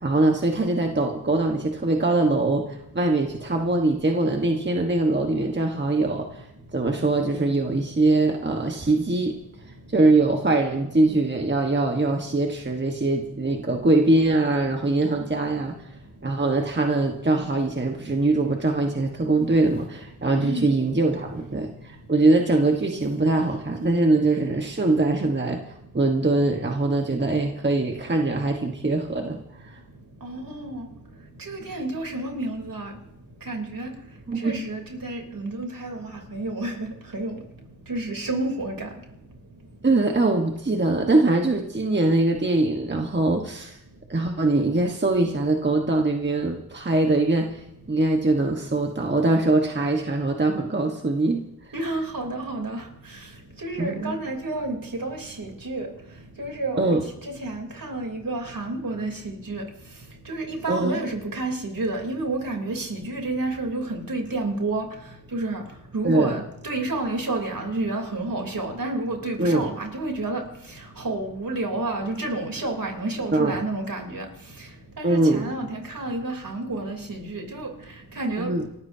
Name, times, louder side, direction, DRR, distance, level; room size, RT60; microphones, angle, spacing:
voice 1, 0.0-6.5 6.7-9.3 9.9-15.7 16.2-29.8 34.3-34.5 39.8-43.8 44.1-51.4 53.8-54.1 56.8-57.0 60.7-61.0 66.0-66.4 69.4-69.7 73.3-73.6 75.0-75.5 78.4-78.7, right 2 dB, 30° right, 2 dB, 1.3 m, -22 dB
voice 2, 30.2-30.9 31.5-32.9 33.5-33.9 34.4-36.0 36.3-36.9 37.1-37.3 37.9-38.9 51.7-52.8 53.6-55.9 56.4-57.0 57.4-59.6 60.3-64.9 65.3-65.6 65.9-70.4 71.0-74.2 75.0-77.7 78.2-78.5, right 2 dB, 60° right, 2 dB, 3.4 m, -30 dB
29.0 x 14.0 x 2.8 m, 0.81 s
wide cardioid pair, 65°, 38 cm